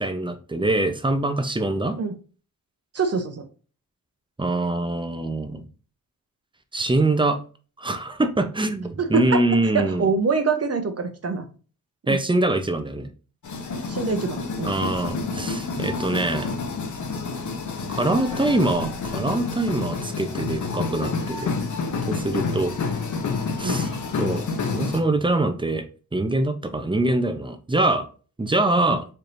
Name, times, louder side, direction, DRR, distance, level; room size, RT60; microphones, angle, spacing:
voice 1, 0.0-2.0 4.4-5.7 6.7-7.4 7.8-10.1 12.1-13.1 14.6-16.5 17.9-21.5 22.1-22.7 23.6-23.9 24.2-24.4 24.7-25.8 26.1-28.1 28.4-29.0, right 2 dB, 15° right, 8 dB, 0.6 m, -24 dB
voice 2, 2.9-3.4 9.0-9.4 9.7-11.5 12.1-12.2 13.9-14.7 23.6-23.8, right 4 dB, 45° right, 7 dB, 0.8 m, -24 dB
sound 1, 13.4-25.0, left 4 dB, 55° left, 0.8 m, -29 dB
4.4 x 3.3 x 2.5 m, 0.37 s
cardioid pair, 70°, 36 cm